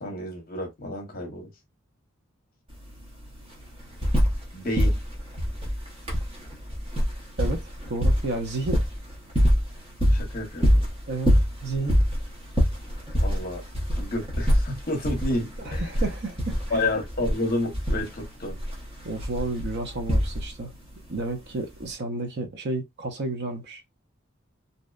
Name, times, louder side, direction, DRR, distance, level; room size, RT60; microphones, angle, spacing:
voice 1, 0.0-1.5 4.5-5.0 10.1-10.7 13.2-13.6 14.0-15.9 16.7-18.6, left 2 dB, 45° left, 0.8 m, -30 dB
sound 1, 2.7-2.8 3.0-4.5 4.7-20.7 21.8-21.9, equal, 25° right, 0.8 m, -25 dB
voice 2, 7.4-8.8 11.1-11.3 11.6-12.0 15.6-16.9 19.0-20.7 21.1-23.8, right 2 dB, 55° right, 0.5 m, -31 dB
2.6 x 2.1 x 2.3 m
head